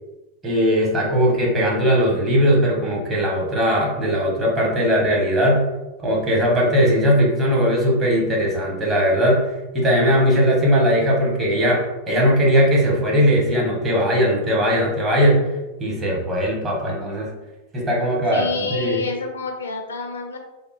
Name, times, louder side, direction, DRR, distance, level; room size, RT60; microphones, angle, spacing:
voice 1, 0.4-5.6 6.0-9.4 9.7-11.8 12.1-15.4 15.8-17.3 17.7-18.4 18.7-19.0, equal, 20° right, -3 dB, 1.0 m, -19 dB
voice 2, 18.3-20.4, left 4 dB, 70° left, 3 dB, 0.4 m, -28 dB
3.5 x 2.3 x 2.6 m, 1.0 s
figure-of-eight pair, 90°, 0 cm